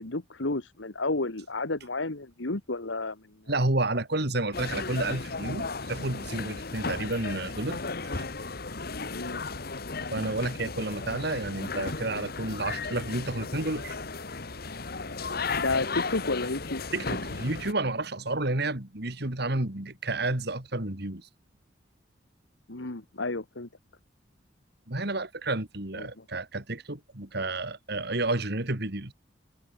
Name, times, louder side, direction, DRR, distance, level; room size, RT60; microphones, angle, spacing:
voice 1, 0.0-3.5 9.1-9.4 15.6-16.8 22.7-23.7 25.9-26.2, left 2 dB, 90° left, 1.9 m, -32 dB
voice 2, 3.5-7.8 8.1-8.2 10.1-14.0 16.9-21.3 24.9-29.1, right 2 dB, 60° right, 2.8 m, -30 dB
sound 1, 4.5-17.7, left 4 dB, 55° left, 1.7 m, -35 dB
head